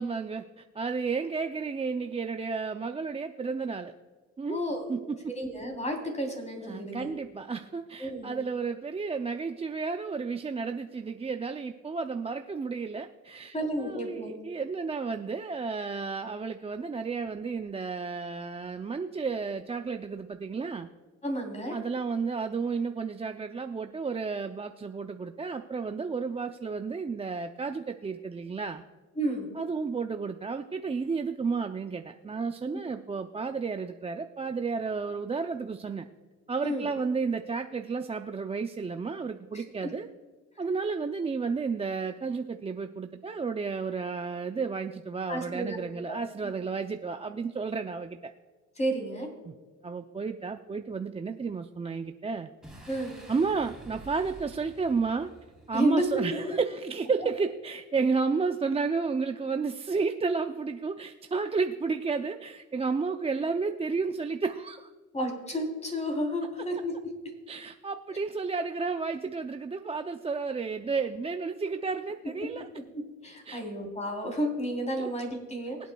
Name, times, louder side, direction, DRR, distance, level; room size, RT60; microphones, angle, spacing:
voice 1, 0.0-3.9 4.4-4.6 4.9-5.3 6.6-20.9 21.7-28.8 29.6-36.1 36.5-40.1 40.6-48.3 49.5-49.6 49.8-52.5 53.3-55.3 55.7-64.9 67.5-72.7 73.5-73.6 75.0-75.1, right 4 dB, 20° right, 7 dB, 0.4 m, -32 dB
voice 2, 4.4-4.9 5.3-7.1 8.0-8.3 13.5-14.3 21.2-21.8 29.2-29.5 32.7-32.8 36.6-36.9 39.5-39.9 45.3-45.8 46.1-46.5 48.8-49.3 52.9-53.1 55.7-56.2 65.1-66.9 73.2-75.8, equal, 20° left, 1 dB, 3.4 m, -31 dB
Boom, 52.6-56.2, right 2 dB, ahead, 3.7 m, -49 dB
24.0 x 8.3 x 2.3 m, 1.4 s
cardioid pair, 90°, 30 cm